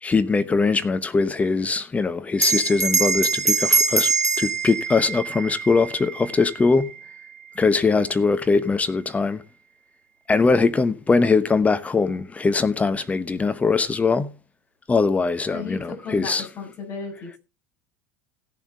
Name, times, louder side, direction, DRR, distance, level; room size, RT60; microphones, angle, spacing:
voice 1, 0.0-4.1 4.4-6.9 7.6-9.4 10.3-14.3 14.9-16.5, left 4 dB, 15° left, 0.8 m, -21 dB
Bell, 2.4-7.2, right 4 dB, 90° right, 1.0 m, -24 dB
voice 2, 15.5-17.4, left 5 dB, 40° left, 7.1 m, -34 dB
17.0 x 7.3 x 3.6 m
figure-of-eight pair, 75°, 8 cm